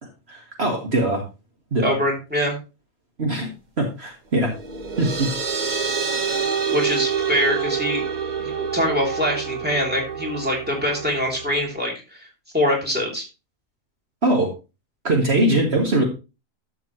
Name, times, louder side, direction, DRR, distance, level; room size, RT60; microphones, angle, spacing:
voice 1, 0.3-1.2 1.7-2.0 3.2-3.5 3.8-4.5 5.0-5.3 14.2-14.5 15.0-16.0, right 1 dB, 50° right, 1 dB, 1.9 m, -21 dB
voice 2, 1.8-2.5 6.7-8.0 8.4-12.3 12.5-13.3, equal, 5° right, 0 dB, 3.0 m, -24 dB
sound 1, 4.5-11.6, right 6 dB, 35° right, 1.0 m, -27 dB
12.5 x 6.8 x 3.1 m, 0.29 s
omnidirectional pair, 1.4 m